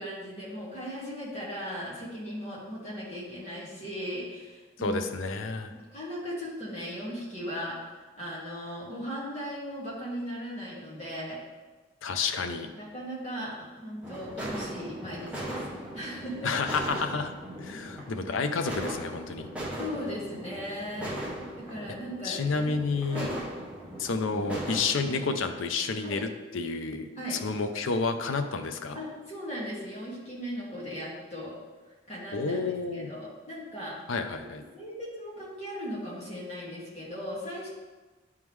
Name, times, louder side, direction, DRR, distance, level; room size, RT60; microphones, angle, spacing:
voice 1, 0.0-5.0 5.9-11.4 12.7-15.6 15.9-16.5 19.8-21.2 21.7-22.8 23.1-23.3 26.0-26.2 27.2-27.4 28.9-31.5 32.1-34.0 34.4-34.5 34.7-37.7, equal, 35° left, -7 dB, 1.8 m, -37 dB
voice 2, 4.8-5.7 12.0-12.7 16.4-17.3 17.6-19.5 22.2-23.3 24.0-29.0 32.3-33.1 34.1-34.6, left 4 dB, 80° left, 7 dB, 0.5 m, -30 dB
sound 1, 14.0-25.4, right 1 dB, 5° right, 0.8 m, -39 dB
9.5 x 3.6 x 3.1 m, 1.3 s
head